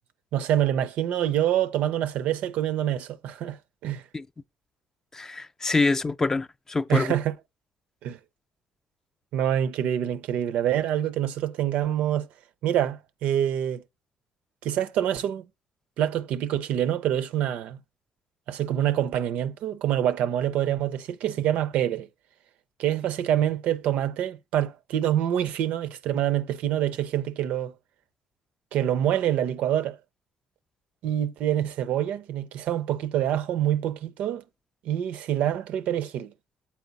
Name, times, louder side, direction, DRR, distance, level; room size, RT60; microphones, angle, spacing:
voice 1, 0.3-3.6 3.8-4.0 6.9-7.3 8.0-8.2 9.3-12.3 12.6-13.8 14.6-15.4 16.0-17.8 18.5-22.1 22.8-27.7 28.7-30.0 31.0-34.4 34.8-36.3, right 11 dB, 80° right, 0.5 m, -26 dB
voice 2, 5.1-7.1, left 3 dB, 25° left, 0.4 m, -25 dB
7.0 x 4.4 x 4.0 m
cardioid pair, 85°, 2 cm